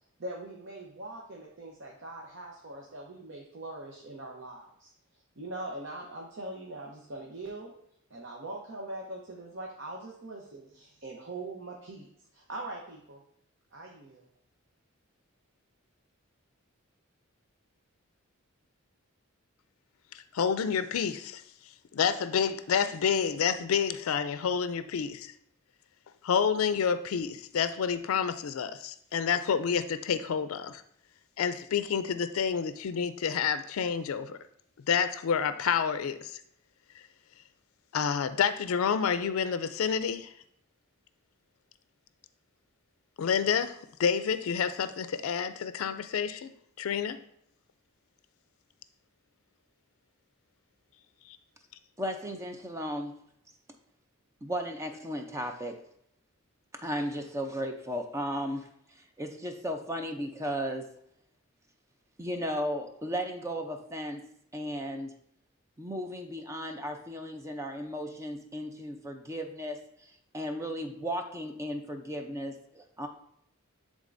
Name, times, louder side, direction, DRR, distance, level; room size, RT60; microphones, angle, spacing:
voice 1, 0.2-4.9 5.4-7.7 8.1-13.2 13.7-14.2, right 2 dB, 60° right, -1 dB, 0.8 m, -42 dB
voice 2, 20.3-21.4 21.9-25.3 26.2-30.8 31.4-34.4 34.9-36.4 37.9-40.3 43.2-46.5 46.8-47.2, left 7 dB, 85° left, 12 dB, 0.4 m, -29 dB
voice 3, 52.0-53.1 54.4-55.8 56.7-58.7 59.2-60.9 62.2-64.2 64.5-65.1 65.8-69.8 70.3-73.1, equal, 15° right, 5 dB, 0.5 m, -35 dB
10.5 x 3.7 x 2.6 m, 0.72 s
head